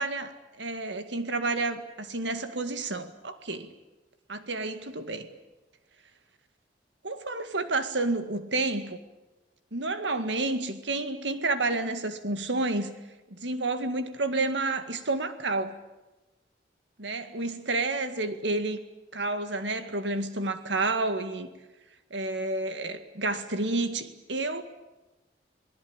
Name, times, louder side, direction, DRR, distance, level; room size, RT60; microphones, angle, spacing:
voice 1, 0.0-3.7 4.3-5.3 7.0-9.0 9.7-12.9 13.3-15.7 17.0-18.8 19.1-21.5 22.1-24.6, right 2 dB, 85° right, 9 dB, 2.0 m, -30 dB
27.5 x 19.0 x 8.9 m, 1.1 s
head